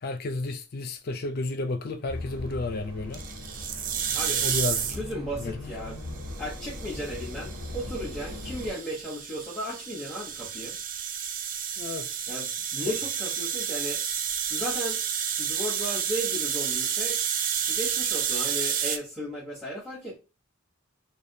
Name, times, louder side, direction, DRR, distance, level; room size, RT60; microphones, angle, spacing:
voice 1, 0.0-3.2 4.4-4.9 5.4-5.5 11.8-12.1 12.9-13.0, left 2 dB, 50° left, 0.5 m, -32 dB
sound 1, 2.1-8.7, left 1 dB, 70° right, 1.2 m, -39 dB
sound 2, 3.1-5.1 6.2-19.0, right 8 dB, 40° right, 0.3 m, -30 dB
voice 2, 4.1-4.6 4.9-6.0 6.4-10.8 12.3-14.0 14.5-15.0 15.4-17.2 17.7-20.2, equal, 5° left, 1.0 m, -35 dB
3.4 x 2.2 x 2.7 m
head